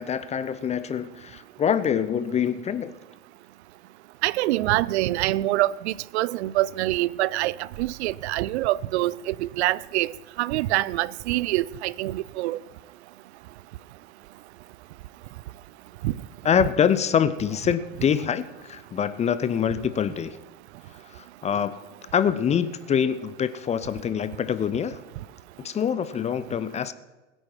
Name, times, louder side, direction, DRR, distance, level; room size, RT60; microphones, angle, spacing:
voice 1, 0.0-3.0 16.4-20.4 21.1-21.8 22.1-25.0 25.6-26.9, left 8 dB, 15° left, 0.5 m, -25 dB
voice 2, 4.2-10.1 10.4-12.6 16.0-16.1, right 17 dB, 55° right, 0.5 m, -25 dB
20.5 x 8.9 x 4.6 m
figure-of-eight pair, 90°, 41 cm